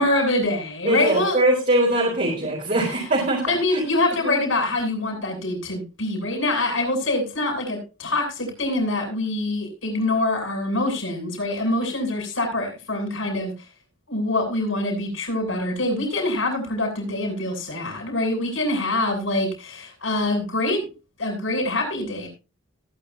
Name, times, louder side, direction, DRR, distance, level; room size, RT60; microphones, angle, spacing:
voice 1, 0.0-1.4 2.9-3.0 3.5-13.5 14.1-20.9 21.2-22.3, left 2 dB, 70° left, 2 dB, 7.7 m, -25 dB
voice 2, 0.8-3.4 3.7-3.8 4.2-4.4, right 1 dB, 40° right, -2 dB, 4.0 m, -22 dB
19.5 x 10.0 x 2.8 m, 0.31 s
head